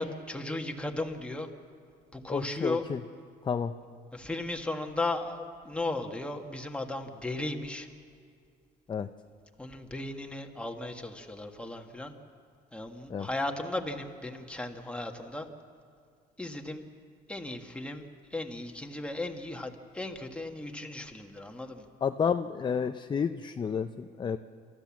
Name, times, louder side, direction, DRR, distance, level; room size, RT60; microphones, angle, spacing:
voice 1, 0.0-1.5 2.1-2.9 4.1-7.9 9.6-12.1 12.7-15.5 16.4-16.8 17.3-18.1 18.3-21.9, left 2 dB, 5° left, 3 dB, 1.6 m, -36 dB
voice 2, 2.3-3.0 3.4-3.7 8.9-9.1 13.1-13.3 22.0-24.4, left 6 dB, 25° left, 8 dB, 0.6 m, -30 dB
28.0 x 14.0 x 7.3 m, 2.2 s
cardioid pair, 110°, 17 cm